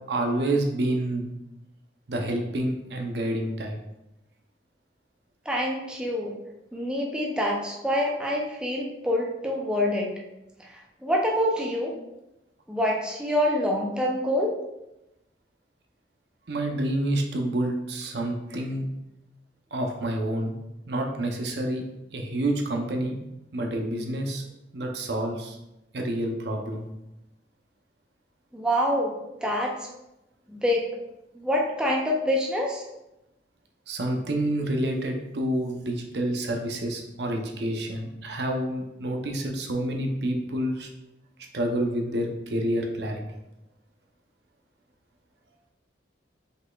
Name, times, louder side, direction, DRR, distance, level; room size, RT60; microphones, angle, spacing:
voice 1, 0.1-1.3 2.1-3.8 16.5-18.8 19.7-20.5 20.9-21.8 22.1-23.2 23.5-24.4 24.7-25.6 25.9-26.8 33.9-40.9 41.5-43.2, right 1 dB, 65° right, 2 dB, 0.7 m, -28 dB
voice 2, 5.5-6.3 6.7-10.1 10.6-11.9 12.7-14.6 28.5-29.2 29.4-29.8 30.5-30.9 31.4-32.8, equal, 5° right, -2 dB, 0.5 m, -26 dB
5.3 x 4.0 x 2.3 m, 0.91 s
head